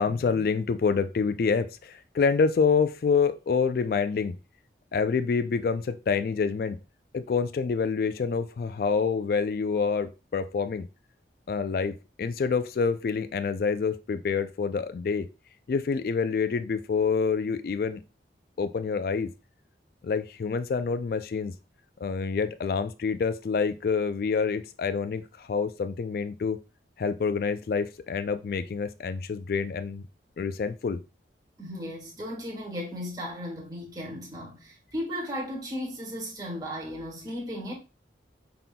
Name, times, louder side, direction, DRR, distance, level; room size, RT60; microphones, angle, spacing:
voice 1, 0.0-4.3 4.9-6.8 7.1-10.9 11.5-15.3 15.7-18.0 18.6-19.3 20.0-21.5 22.0-26.6 27.0-30.0 30.4-31.0, left 5 dB, 55° left, 0.3 m, -27 dB
voice 2, 31.6-37.7, equal, 20° right, 1.4 m, -35 dB
5.8 x 3.7 x 2.2 m
head